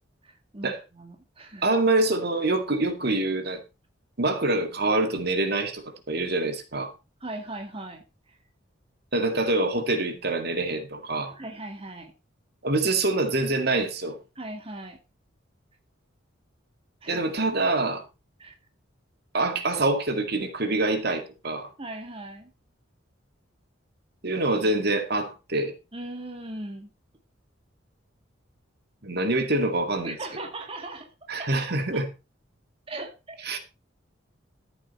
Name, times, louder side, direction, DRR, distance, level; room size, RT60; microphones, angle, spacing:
voice 1, 0.2-1.8 7.2-8.4 11.4-12.1 14.4-15.0 17.0-17.3 18.4-18.6 21.8-22.5 25.9-26.9 30.0-31.1 31.4-32.0 32.9-33.5, right 2 dB, 30° right, 1.9 m, -39 dB
voice 2, 1.6-3.6 4.2-5.8 6.1-6.9 9.1-11.4 12.6-14.2 17.1-18.0 19.3-21.7 24.2-25.7 29.0-30.2 31.3-32.1 33.4-33.6, right 2 dB, 55° right, 2.2 m, -25 dB
14.0 x 8.3 x 4.3 m
head